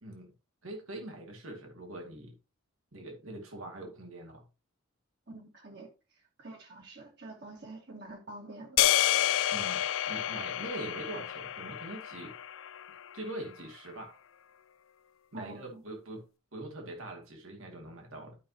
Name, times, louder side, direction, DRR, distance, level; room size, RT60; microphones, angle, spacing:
voice 1, 0.0-0.3 0.6-2.3 2.9-4.4 9.5-12.4 13.1-14.2 15.3-18.4, right 1 dB, 80° right, 2.5 m, -43 dB
voice 2, 5.3-5.9 6.4-8.8 15.3-15.8, right 2 dB, 50° right, 1.9 m, -47 dB
sound 1, 8.8-13.1, left 12 dB, 70° left, 0.4 m, -29 dB
12.0 x 5.8 x 2.9 m
head